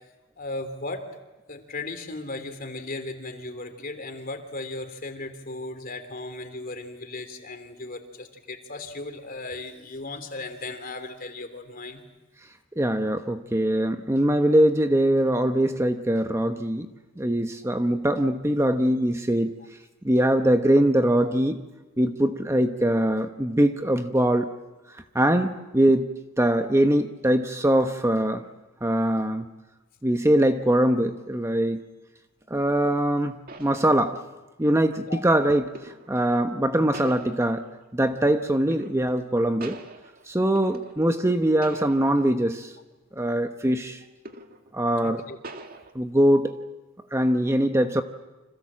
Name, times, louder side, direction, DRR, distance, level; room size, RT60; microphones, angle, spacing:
voice 1, 0.4-1.0 1.5-12.0 35.1-35.2 45.0-45.4, left 2 dB, 45° left, 7 dB, 3.2 m, -36 dB
voice 2, 12.8-16.9 17.2-19.6 20.0-21.6 22.0-24.5 25.1-26.1 26.4-28.4 28.8-29.5 30.0-31.8 32.5-34.2 34.6-37.7 37.9-39.8 40.3-42.7 43.1-44.0 44.7-45.2 45.9-46.6 47.1-48.0, right 1 dB, 15° right, 7 dB, 1.0 m, -22 dB
sound 1, 33.5-34.4 35.7-36.2 36.9-37.8 38.7-39.3 39.6-41.3 41.6-42.4 42.8-42.9 44.2-44.7 45.4-45.9, right 2 dB, 45° right, 2.1 m, -43 dB
30.0 x 26.0 x 7.5 m, 1.1 s
head